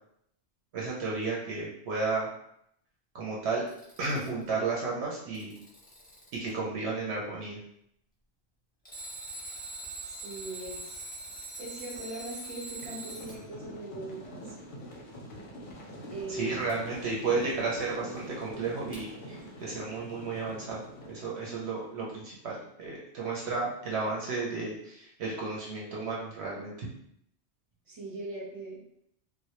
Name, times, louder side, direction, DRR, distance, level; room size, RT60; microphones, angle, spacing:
voice 1, 0.7-2.3 3.1-3.6 4.0-5.5 6.3-7.6 16.3-20.8 21.1-26.9, right 3 dB, 70° right, -4 dB, 0.8 m, -33 dB
Alarm, 3.5-4.5 5.1-6.5 8.8-13.4 16.7-16.8 18.9-19.0, right 2 dB, 10° left, 0.4 m, -42 dB
voice 2, 10.1-11.0 11.6-14.5 16.1-16.7 27.9-28.8, right 2 dB, 40° right, -6 dB, 0.5 m, -40 dB
sound 1, 12.8-21.9, equal, 60° left, 0.6 m, -45 dB
2.1 x 2.0 x 2.8 m, 0.73 s
omnidirectional pair, 1.2 m